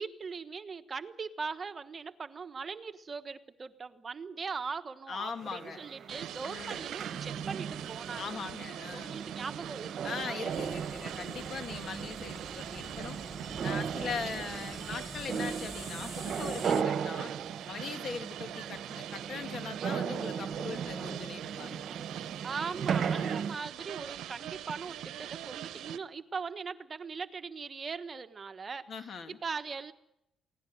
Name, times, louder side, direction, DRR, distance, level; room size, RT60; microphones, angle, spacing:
voice 1, 0.0-8.4 8.9-10.4 22.4-28.8 29.4-29.9, right 5 dB, 35° right, 10 dB, 1.2 m, -40 dB
voice 2, 5.1-5.8 6.4-6.9 8.2-9.2 10.0-13.2 13.6-17.3 17.6-21.8 22.9-23.5 28.9-29.4, left 5 dB, 55° left, 8 dB, 2.2 m, -41 dB
sound 1, 5.4-23.6, right 7 dB, 60° right, 1.3 m, -37 dB
sound 2, 6.1-26.0, right 11 dB, 80° right, 0.9 m, -44 dB
sound 3, 10.5-16.8, left 1 dB, 5° left, 1.0 m, -48 dB
23.5 x 17.5 x 7.9 m, 0.83 s
cardioid pair, 90°, 0 cm